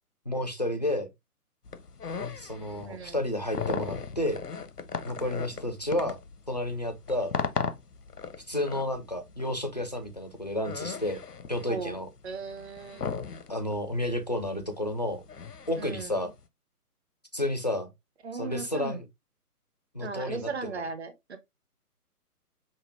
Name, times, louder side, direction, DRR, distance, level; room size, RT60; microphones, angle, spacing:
voice 1, 0.3-1.1 2.4-4.4 5.0-6.2 6.5-7.3 8.5-11.2 11.5-12.1 13.5-15.2 15.7-16.3 17.3-17.9 18.3-19.1 19.9-20.7, left 1 dB, 30° left, 0.4 m, -31 dB
sound 1, 1.7-16.4, left 6 dB, 85° left, 0.8 m, -37 dB
voice 2, 2.8-3.2 5.2-5.5 11.7-11.9 12.2-13.1 15.8-16.2 18.2-19.0 20.0-21.4, right 4 dB, 45° right, 0.8 m, -37 dB
5.5 x 2.0 x 3.3 m
figure-of-eight pair, 140°, 46 cm